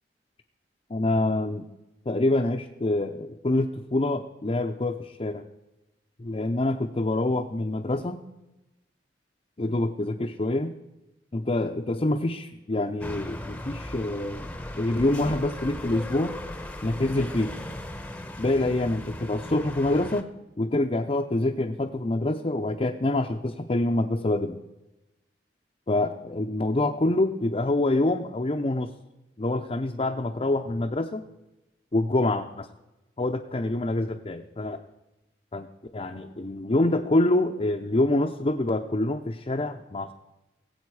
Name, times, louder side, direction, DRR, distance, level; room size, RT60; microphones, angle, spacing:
voice 1, 0.9-1.6 2.1-5.4 6.2-8.2 9.6-10.7 11.3-16.3 16.8-17.5 18.4-20.3 20.6-24.6 25.9-28.9 29.4-31.2 31.9-32.7 33.2-34.8 35.5-35.7 35.9-40.1, left 2 dB, 35° left, 2 dB, 0.6 m, -26 dB
sound 1, 13.0-20.2, left 1 dB, 10° left, 0.9 m, -37 dB
21.0 x 8.0 x 4.8 m, 0.98 s
head